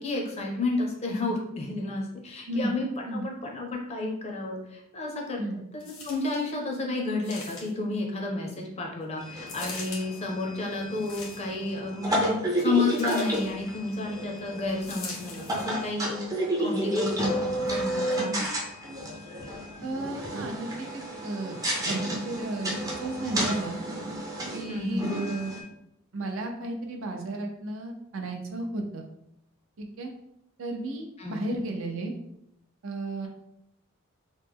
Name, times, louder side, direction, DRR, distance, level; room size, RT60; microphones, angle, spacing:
voice 1, 0.0-16.2 16.6-18.5 24.7-25.1 31.2-31.5, left 2 dB, 30° left, 0 dB, 0.5 m, -31 dB
voice 2, 2.5-2.8 3.0-3.3 5.4-5.6 19.8-21.6 21.9-22.7 23.0-23.8 24.5-25.5 26.1-29.1 29.8-30.1 30.6-32.1 32.8-33.3, right 2 dB, 65° right, 3 dB, 0.5 m, -33 dB
sound 1, 5.8-6.5 7.2-7.9 9.5-10.0 10.9-11.7 13.0-13.5 14.8-15.7 16.4-16.5, left 3 dB, 75° left, 0.9 m, -41 dB
sound 2, 9.2-25.6, right 1 dB, 15° right, 0.5 m, -31 dB
3.1 x 2.0 x 3.5 m, 0.80 s
head